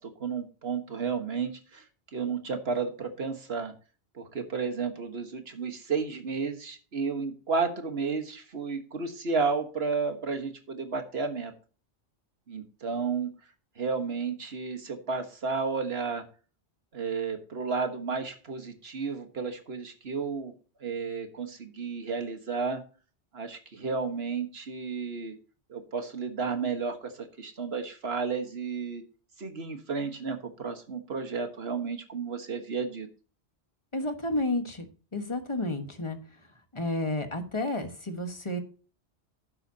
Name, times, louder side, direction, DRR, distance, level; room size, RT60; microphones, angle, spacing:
voice 1, 0.0-1.8 2.1-3.7 4.2-11.5 12.5-13.3 13.8-16.2 16.9-20.5 20.8-22.8 23.3-25.3 25.7-29.0 29.4-33.1, right 5 dB, 65° right, 6 dB, 1.8 m, -32 dB
voice 2, 33.9-34.8 35.1-36.2 36.7-38.6, left 2 dB, 25° left, 6 dB, 1.5 m, -31 dB
11.5 x 9.6 x 2.9 m, 0.37 s
omnidirectional pair, 1.1 m